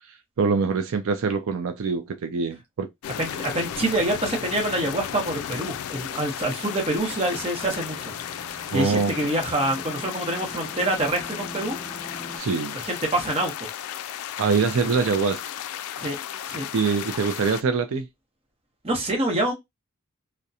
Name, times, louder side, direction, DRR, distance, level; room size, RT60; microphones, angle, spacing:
voice 1, 0.4-2.9 8.7-9.1 12.3-12.8 14.4-15.4 16.7-18.1, right 5 dB, 75° right, 0.4 m, -24 dB
sound 1, 3.0-17.6, left 10 dB, 85° left, 0.3 m, -34 dB
voice 2, 3.2-8.1 8.7-11.8 12.7-13.7 16.0-16.2 16.5-16.7 18.8-19.5, right 1 dB, 25° right, 0.8 m, -26 dB
sound 2, 7.0-12.4, equal, 20° left, 0.6 m, -43 dB
2.7 x 2.1 x 2.3 m
head